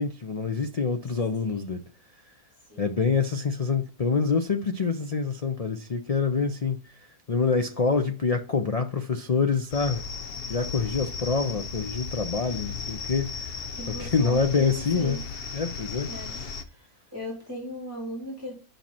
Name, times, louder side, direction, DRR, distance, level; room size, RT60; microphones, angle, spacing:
voice 1, 0.0-1.8 2.8-10.0 10.5-13.5 13.9-15.2 15.5-16.1, left 5 dB, 75° left, 0.3 m, -26 dB
sound 1, 9.7-16.6, left 5 dB, 45° left, 0.9 m, -36 dB
voice 2, 13.8-15.2 16.1-16.3 17.1-18.5, equal, 10° right, 3.6 m, -37 dB
7.3 x 5.8 x 4.3 m
omnidirectional pair, 1.7 m